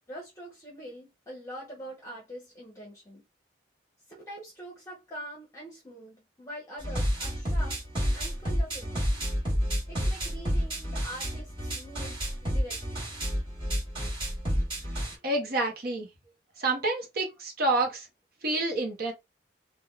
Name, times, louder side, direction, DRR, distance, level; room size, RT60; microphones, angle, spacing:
voice 1, 0.1-3.2 4.1-7.8 8.1-9.2 9.9-13.0, equal, 15° left, 0.9 m, -44 dB
sound 1, 6.8-15.1, equal, 30° right, 1.5 m, -30 dB
voice 2, 15.2-16.1 16.6-18.1 18.4-19.1, right 2 dB, 55° right, 0.9 m, -28 dB
3.4 x 2.2 x 2.3 m
head